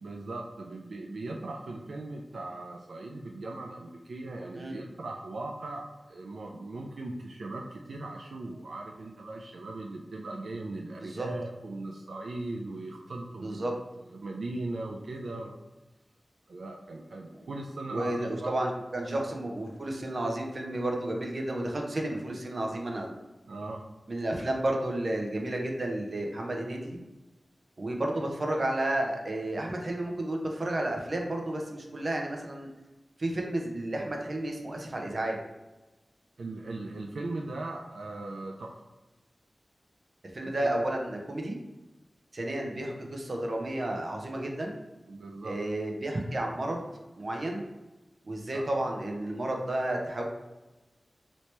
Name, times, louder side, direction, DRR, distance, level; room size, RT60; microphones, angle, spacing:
voice 1, 0.0-13.7 14.0-15.6 16.5-18.5 19.0-19.2 23.5-23.8 36.4-38.8 40.4-40.7 45.1-45.6 48.5-48.6, right 2 dB, 85° right, 0 dB, 0.3 m, -39 dB
voice 2, 10.8-11.3 13.4-13.7 17.9-23.2 24.1-27.0 27.8-32.7 33.2-35.4 40.3-41.6 42.3-44.8 45.4-46.8 47.2-47.7 48.2-50.2, right 1 dB, 55° right, 1 dB, 0.6 m, -32 dB
3.0 x 2.8 x 3.2 m, 1.1 s
wide cardioid pair, 75°, 0 cm